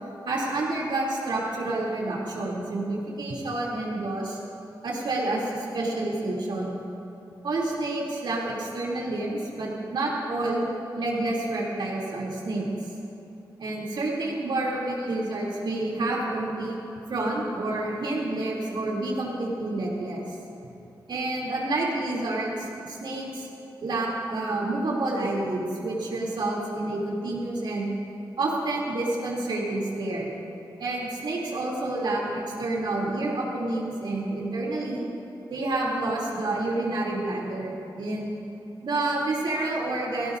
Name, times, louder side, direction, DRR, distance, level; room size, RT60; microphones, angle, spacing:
voice 1, 0.2-4.4 4.8-6.8 7.4-10.7 10.9-12.7 13.6-16.8 17.1-20.2 21.1-23.5 23.8-27.9 28.4-30.3 30.8-35.1 35.5-38.3 38.8-40.4, right 2 dB, 75° right, -3 dB, 3.2 m, -29 dB
18.0 x 16.5 x 2.7 m, 2.9 s
cardioid pair, 80°, 8 cm